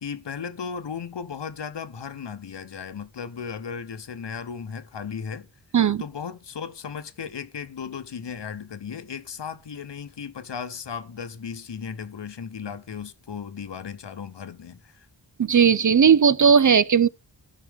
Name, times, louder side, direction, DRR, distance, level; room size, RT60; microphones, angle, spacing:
voice 1, 0.0-5.5 6.0-15.1, left 6 dB, 65° left, 0.9 m, -36 dB
voice 2, 15.4-17.1, right 7 dB, 45° right, 0.5 m, -17 dB
17.5 x 5.8 x 3.5 m
wide cardioid pair, 55°, 45 cm